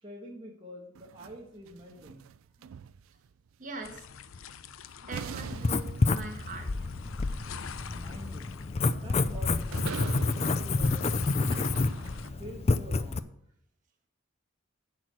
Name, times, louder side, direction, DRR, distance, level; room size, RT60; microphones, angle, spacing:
voice 1, 0.0-2.3 7.9-8.4 8.8-11.9 12.4-13.3, equal, 25° right, -3 dB, 1.4 m, -46 dB
sound 1, 0.9-3.3 4.5-4.6 5.1-12.6, right 7 dB, 85° right, 0.3 m, -44 dB
voice 2, 3.6-4.1 5.0-6.9 7.4-7.7, right 2 dB, 40° right, 3 dB, 1.6 m, -43 dB
sound 2, 3.8-12.3, left 7 dB, 85° left, 0.5 m, -47 dB
Writing, 5.5-13.2, left 3 dB, 30° left, 0.4 m, -29 dB
10.5 x 4.7 x 7.6 m, 0.67 s
head